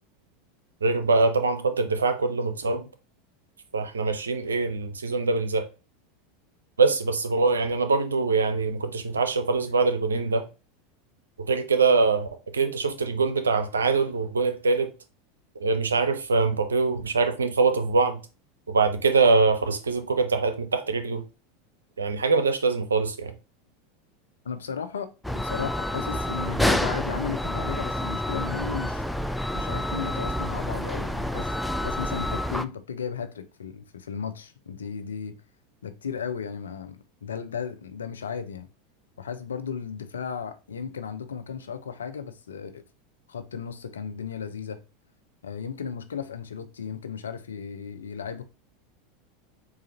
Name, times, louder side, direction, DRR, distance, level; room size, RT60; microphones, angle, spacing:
voice 1, 0.8-2.8 3.7-5.7 6.8-10.4 11.4-12.3 12.5-14.9 15.6-18.2 18.7-21.2 22.0-23.3, right 4 dB, 85° right, 0.5 m, -23 dB
voice 2, 24.4-29.1 29.5-35.4 35.8-38.7 39.2-42.8 43.3-44.8 45.4-48.4, left 7 dB, 85° left, 0.5 m, -35 dB
sound 1, 25.2-32.7, left 1 dB, 5° left, 0.3 m, -28 dB
3.9 x 2.5 x 4.1 m
hypercardioid pair, 85°, 0 cm